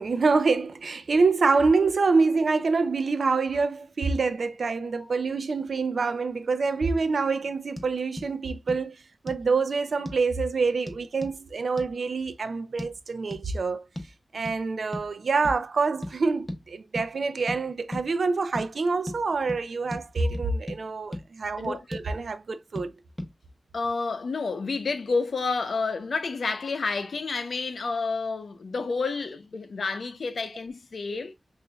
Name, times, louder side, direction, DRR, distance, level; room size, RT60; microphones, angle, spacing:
voice 1, 0.0-13.8 14.3-22.9 31.1-31.2, right 4 dB, 80° right, 0.5 m, -26 dB
sound 1, 7.8-7.9 8.2-8.3 8.7-8.8 9.3-9.5 10.1-10.2 10.9-11.4 11.8-11.9 12.8-12.9 13.3-13.5 14.0-14.1 14.5-14.6 14.9-15.1 15.4-15.6 16.0-16.2 16.5-16.6 17.0-17.1 17.5-17.6 17.9-18.1 18.5-18.7 19.1-19.2 19.5-19.6 19.9-20.0 20.3-20.8 21.1-21.2 21.6-22.1 22.8-22.9 23.2-23.3, left 1 dB, 10° left, 1.1 m, -36 dB
voice 2, 23.7-31.3, left 4 dB, 80° left, 0.6 m, -30 dB
5.5 x 2.6 x 2.3 m
cardioid pair, 60°, 0 cm